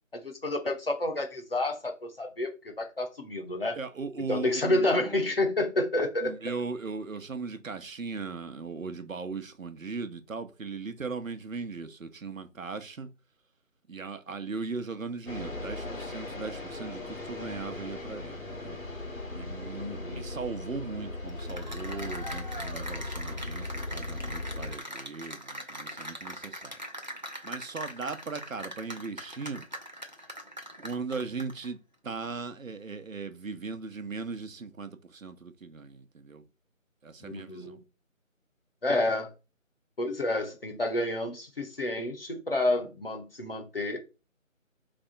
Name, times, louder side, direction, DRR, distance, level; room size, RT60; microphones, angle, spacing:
voice 1, 0.1-2.5 2.8-3.8 4.3-6.3 19.8-20.2 37.2-37.8 38.8-39.3 40.0-44.0, left 2 dB, 45° left, 0.9 m, -29 dB
voice 2, 3.7-5.3 6.2-13.1 13.9-18.8 19.3-26.8 27.4-29.6 30.8-36.4 37.0-37.8, right 4 dB, 75° right, 0.8 m, -38 dB
sound 1, 15.3-24.7, left 2 dB, 75° left, 1.6 m, -38 dB
Cheering / Applause, 21.3-31.7, equal, 35° right, 0.5 m, -41 dB
3.5 x 3.3 x 3.9 m
figure-of-eight pair, 165°, 41 cm